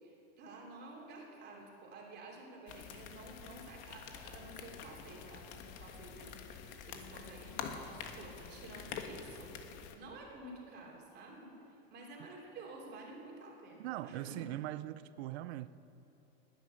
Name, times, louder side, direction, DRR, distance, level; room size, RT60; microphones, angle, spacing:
voice 1, 0.0-14.5, right 2 dB, 30° right, 3.1 m, -51 dB
sound 1, 2.7-10.0, left 7 dB, 60° left, 1.6 m, -47 dB
voice 2, 13.8-15.7, right 14 dB, 75° right, 0.7 m, -41 dB
19.0 x 10.5 x 6.6 m
supercardioid pair, 155°, 31 cm